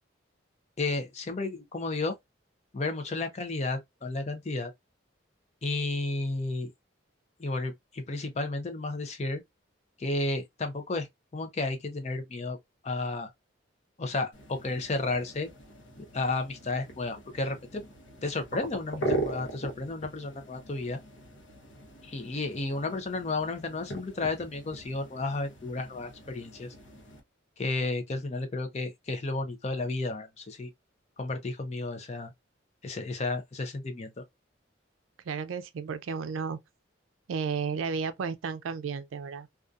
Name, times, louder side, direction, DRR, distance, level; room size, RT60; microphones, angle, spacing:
voice 1, 0.8-2.1 2.7-4.7 5.6-6.7 7.4-9.4 10.0-11.1 11.3-12.6 12.8-13.3 14.0-15.5 16.1-17.8 18.2-21.0 22.0-26.7 27.6-30.7 31.2-32.3 32.8-34.2, left 3 dB, 35° left, 0.5 m, -32 dB
sound 1, 14.3-27.2, right 1 dB, 75° left, 0.8 m, -40 dB
voice 2, 35.3-36.6 37.3-39.5, right 5 dB, 85° right, 0.4 m, -33 dB
2.6 x 2.3 x 2.3 m
head